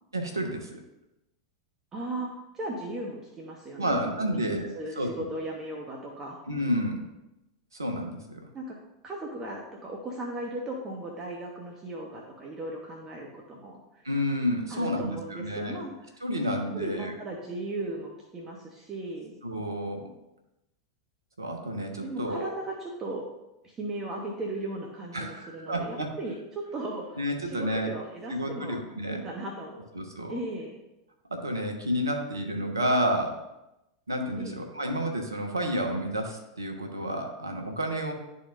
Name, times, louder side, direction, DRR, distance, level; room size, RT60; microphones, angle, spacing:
voice 1, 0.1-0.8 3.8-5.1 6.5-7.1 7.7-8.5 14.0-15.8 16.2-17.1 19.4-20.1 21.4-22.6 25.1-26.1 27.2-27.9 28.3-29.2 29.9-30.4 31.3-33.4 34.1-38.1, equal, 80° right, 4 dB, 1.0 m, -30 dB
voice 2, 1.9-6.4 8.5-8.8 9.0-13.8 14.7-15.9 16.7-19.4 22.0-23.2 23.6-29.9 30.3-30.7 34.4-34.6, right 2 dB, 25° right, -1 dB, 1.2 m, -37 dB
11.5 x 4.1 x 2.6 m, 0.94 s
figure-of-eight pair, 90°, 2 cm